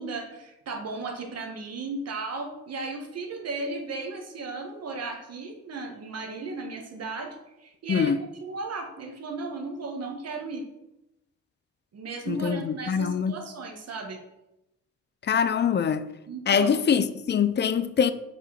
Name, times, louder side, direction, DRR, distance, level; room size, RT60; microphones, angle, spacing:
voice 1, 0.0-8.1 8.4-10.6 11.9-14.2 16.3-16.8, right 3 dB, 55° right, 1.5 m, -35 dB
voice 2, 12.3-13.3 15.3-16.1 16.5-18.1, left 7 dB, 35° left, 0.6 m, -24 dB
5.4 x 5.1 x 5.8 m
cardioid pair, 90°, 30 cm